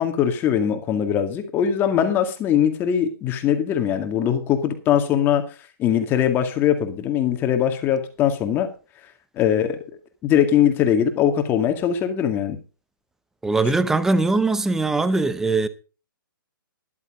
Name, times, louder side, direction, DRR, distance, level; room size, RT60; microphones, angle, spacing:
voice 1, 0.0-5.4 5.8-8.7 9.4-9.8 10.2-12.6, left 9 dB, 15° left, 2.1 m, -21 dB
voice 2, 13.4-15.7, right 3 dB, 5° right, 0.7 m, -21 dB
13.5 x 11.0 x 3.8 m
hypercardioid pair, 155°, 12 cm